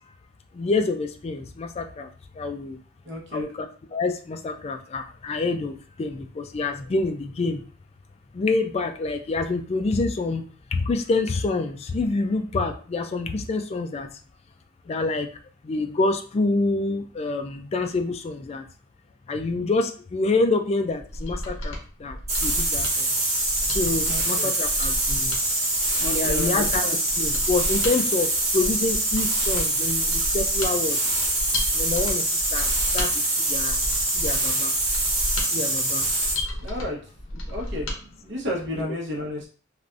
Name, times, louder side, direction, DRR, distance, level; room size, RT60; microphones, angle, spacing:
voice 1, 0.5-2.1 2.4-2.8 3.3-3.7 3.9-7.6 8.3-10.4 10.7-14.1 14.9-15.3 15.6-18.6 19.3-23.1 23.7-25.4 26.0-26.9 27.2-28.3 28.5-31.0 31.7-32.3 32.5-33.1 33.5-33.8 34.1-34.7 35.5-36.1 38.8-38.9, left 3 dB, 30° left, 6 dB, 0.3 m, -27 dB
voice 2, 3.0-3.5 24.0-24.5 26.0-27.0 36.6-37.0 37.5-37.9 38.2-39.5, left 1 dB, 60° right, -2 dB, 0.9 m, -32 dB
Mechanisms, 21.0-38.0 38.3-38.4, left 1 dB, 75° left, 0.8 m, -33 dB
sound 1, 22.3-36.4, right 2 dB, 35° right, 0.9 m, -24 dB
3.3 x 2.5 x 2.5 m, 0.40 s
head